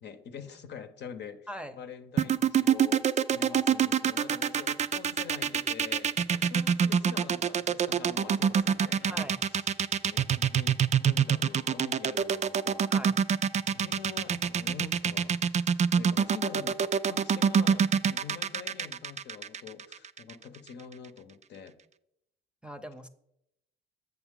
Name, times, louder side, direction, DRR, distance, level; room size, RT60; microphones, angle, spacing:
voice 1, 0.0-9.6 10.0-12.9 13.7-15.4 15.9-21.8, left 6 dB, 60° left, 0.8 m, -45 dB
sound 1, 2.2-20.3, right 7 dB, 35° right, 0.4 m, -25 dB
voice 2, 9.1-9.4 12.9-13.2 22.6-23.1, equal, 5° right, 0.7 m, -41 dB
8.0 x 5.9 x 3.7 m
supercardioid pair, 60°, 20 cm